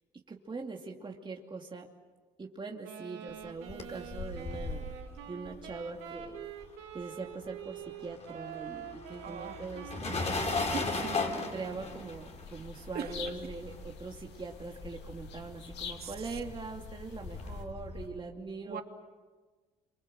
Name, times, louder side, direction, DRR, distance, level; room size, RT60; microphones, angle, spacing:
voice 1, 0.3-1.9 2.4-4.9 5.3-6.4 6.9-10.4 10.9-18.8, right 3 dB, 25° right, 1 dB, 2.6 m, -42 dB
Wind instrument woodwind instrument, 2.8-11.9, right 9 dB, 85° right, 2.6 m, -46 dB
sound 1, 3.4-7.1 7.3-18.1, left 3 dB, 35° left, 4.4 m, -38 dB
voice 2, 9.2-9.6 10.6-11.2 12.9-13.3 16.0-16.3 18.6-18.8, right 7 dB, 60° right, 5 dB, 2.7 m, -41 dB
sound 2, 11.1-17.7, left 6 dB, 70° left, 2.5 m, -48 dB
27.0 x 24.5 x 7.8 m, 1.4 s
supercardioid pair, 70°, 18 cm